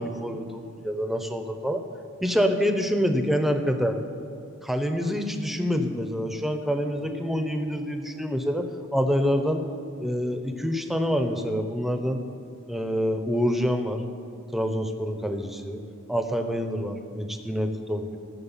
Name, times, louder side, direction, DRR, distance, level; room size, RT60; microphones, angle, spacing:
voice 1, 0.0-1.9 2.2-4.0 4.6-8.7 8.9-9.6 10.0-12.2 12.7-14.0 14.5-15.8 16.1-18.2, equal, ahead, 6 dB, 0.8 m, -26 dB
15.0 x 6.4 x 7.3 m, 2.5 s
head